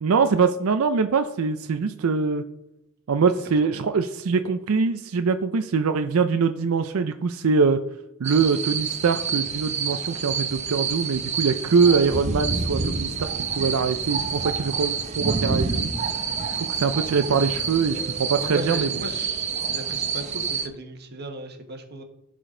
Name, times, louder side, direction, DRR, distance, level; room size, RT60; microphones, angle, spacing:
voice 1, 0.0-2.4 3.1-7.8 8.2-15.9 16.5-18.9, right 5 dB, 90° right, 8 dB, 0.5 m, -23 dB
voice 2, 3.6-4.0 17.9-22.0, right 1 dB, 50° right, 5 dB, 1.3 m, -36 dB
sound 1, 8.2-20.7, right 5 dB, 35° right, 0.7 m, -28 dB
15.0 x 5.0 x 3.8 m, 0.87 s
head